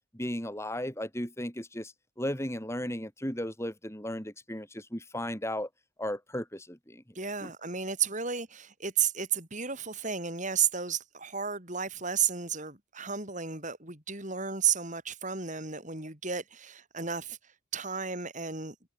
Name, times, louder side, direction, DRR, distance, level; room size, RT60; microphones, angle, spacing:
voice 1, 0.1-5.7 6.0-7.0 7.4-7.5, left 1 dB, 15° left, 5.0 m, -35 dB
voice 2, 7.2-17.4 17.7-18.8, right 7 dB, 35° right, 5.6 m, -32 dB
head